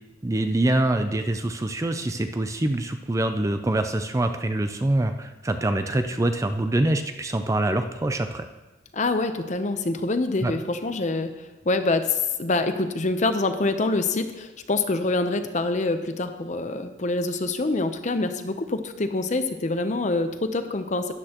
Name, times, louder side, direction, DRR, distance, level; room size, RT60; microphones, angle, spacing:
voice 1, 0.2-8.4 10.4-10.5, right 1 dB, 15° right, 7 dB, 0.4 m, -25 dB
voice 2, 8.9-11.3 11.7-21.1, left 2 dB, 40° left, 8 dB, 0.7 m, -25 dB
12.5 x 10.0 x 3.0 m, 1.2 s
head